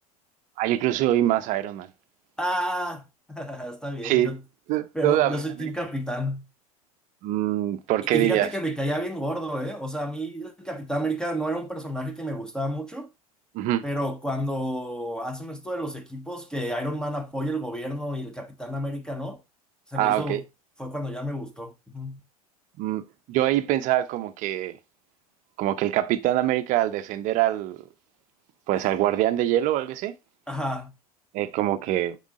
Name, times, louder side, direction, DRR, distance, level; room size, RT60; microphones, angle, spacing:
voice 1, 0.6-1.9 4.0-4.3 4.7-5.7 7.2-8.5 13.5-13.8 20.0-20.4 22.8-23.0 23.3-24.7 25.6-27.8 28.7-30.1 31.3-32.2, right 14 dB, 40° right, 0.6 m, -24 dB
voice 2, 2.4-4.4 4.9-6.4 8.0-13.1 13.8-19.4 19.9-20.4 20.8-22.2 30.5-30.9, equal, 5° left, 0.9 m, -30 dB
7.3 x 3.8 x 3.6 m
figure-of-eight pair, 80°, 19 cm